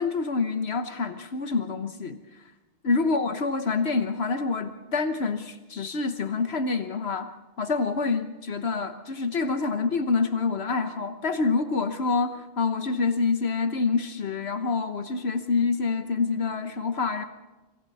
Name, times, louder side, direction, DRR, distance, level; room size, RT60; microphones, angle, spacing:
voice 1, 0.0-2.2 2.8-7.3 7.6-17.2, left 4 dB, 70° left, 8 dB, 1.4 m, -27 dB
27.0 x 26.0 x 4.2 m, 1.1 s
omnidirectional pair, 1.1 m